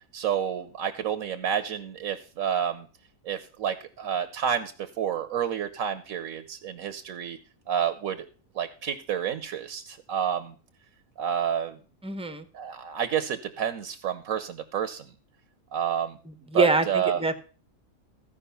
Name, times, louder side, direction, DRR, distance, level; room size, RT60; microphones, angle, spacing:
voice 1, 0.1-2.9 3.2-7.4 7.7-8.3 8.5-10.5 11.2-11.8 12.5-15.1 15.7-16.2 16.5-17.2, right 8 dB, 75° right, 9 dB, 1.2 m, -29 dB
voice 2, 12.0-12.5 16.5-17.4, right 3 dB, 5° right, 9 dB, 0.7 m, -24 dB
14.5 x 5.2 x 6.8 m, 0.38 s
omnidirectional pair, 1.5 m